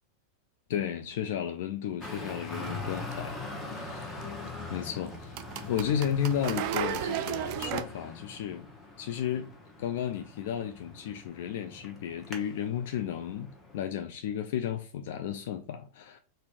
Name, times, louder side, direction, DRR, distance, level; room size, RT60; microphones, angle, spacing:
voice 1, 0.7-3.4 3.7-4.3 4.7-5.4 5.7-8.7 9.0-9.5 9.8-16.2, left 9 dB, 55° left, 0.3 m, -33 dB
Traffic noise roadway noise, 2.0-13.8, left 3 dB, 10° left, 1.0 m, -42 dB
sound 1, 2.6-7.8, right 10 dB, 45° right, 0.4 m, -37 dB
4.0 x 2.6 x 3.5 m
figure-of-eight pair, 90°, 0 cm